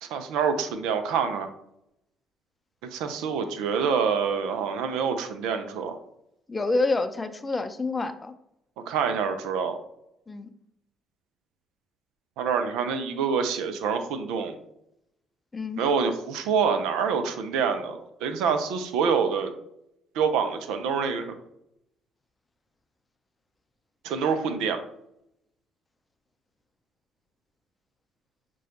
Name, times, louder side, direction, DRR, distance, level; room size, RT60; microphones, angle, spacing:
voice 1, 0.0-1.5 2.9-6.0 8.9-9.8 12.4-14.5 15.8-19.5 20.2-21.3 24.0-24.8, right 6 dB, 70° right, 8 dB, 0.4 m, -26 dB
voice 2, 6.5-8.3 10.3-10.5 15.5-15.8, left 3 dB, 25° left, 9 dB, 0.5 m, -27 dB
6.1 x 2.2 x 2.8 m, 0.79 s
hypercardioid pair, 55°, 0 cm